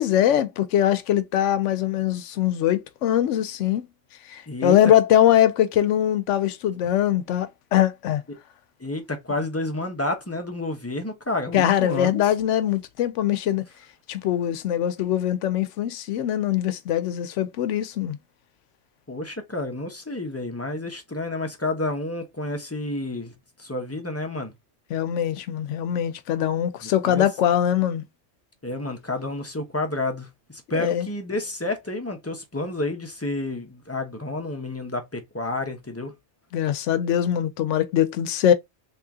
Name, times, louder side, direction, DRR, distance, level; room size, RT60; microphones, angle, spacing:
voice 1, 0.0-3.9 4.3-8.2 11.5-13.6 14.1-18.2 24.9-28.0 30.7-31.1 36.5-38.5, left 11 dB, 85° left, 0.9 m, -22 dB
voice 2, 4.5-4.8 8.8-12.2 19.1-23.3 23.6-24.5 26.8-27.3 28.6-36.1, left 2 dB, 15° left, 0.7 m, -30 dB
3.1 x 2.8 x 3.5 m
omnidirectional pair, 1.2 m